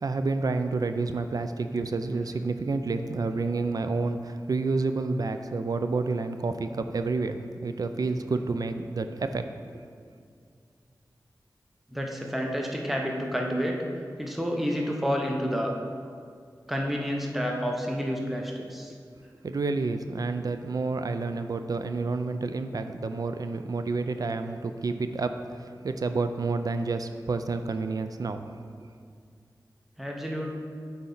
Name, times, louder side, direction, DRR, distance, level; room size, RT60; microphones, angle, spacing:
voice 1, 0.0-9.4 19.4-28.4, right 3 dB, 60° right, 8 dB, 0.3 m, -29 dB
voice 2, 11.9-13.8 14.2-15.7 16.7-18.9 30.0-30.5, equal, ahead, 0 dB, 0.7 m, -29 dB
8.4 x 4.1 x 3.9 m, 2.2 s
wide cardioid pair, 80°, 7 cm